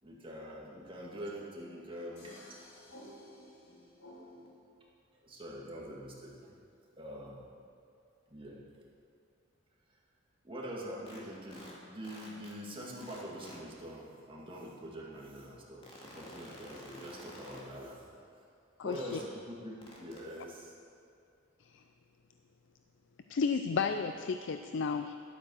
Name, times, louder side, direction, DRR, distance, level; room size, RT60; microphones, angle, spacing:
voice 1, 0.0-2.3 5.2-6.5 7.0-7.4 8.3-8.6 10.4-18.0 18.8-20.7 23.7-23.8, equal, 25° right, 2.0 m, -44 dB
voice 2, 2.2-4.6, left 1 dB, 80° left, 3.1 m, -53 dB
sound 1, 11.1-11.2 11.5-11.7 12.0-13.6 15.8-17.6 18.9-19.2 19.8-20.2, left 1 dB, 30° left, 2.3 m, -50 dB
voice 3, 18.8-19.2 21.7-21.8 23.3-25.2, left 5 dB, 60° left, 0.4 m, -32 dB
12.0 x 8.7 x 6.3 m
head